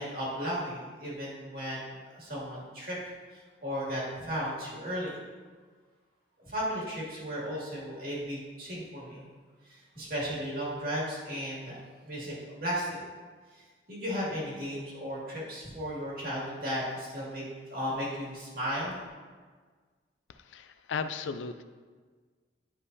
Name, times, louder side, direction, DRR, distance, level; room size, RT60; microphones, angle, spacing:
voice 1, 0.0-3.0 3.3-5.2 6.5-9.2 9.7-11.8 12.0-13.0 13.6-17.4 17.7-18.9, equal, 50° right, -6 dB, 2.2 m, -35 dB
voice 2, 20.5-21.6, left 5 dB, 85° left, 10 dB, 0.4 m, -35 dB
10.0 x 5.3 x 2.7 m, 1.5 s
head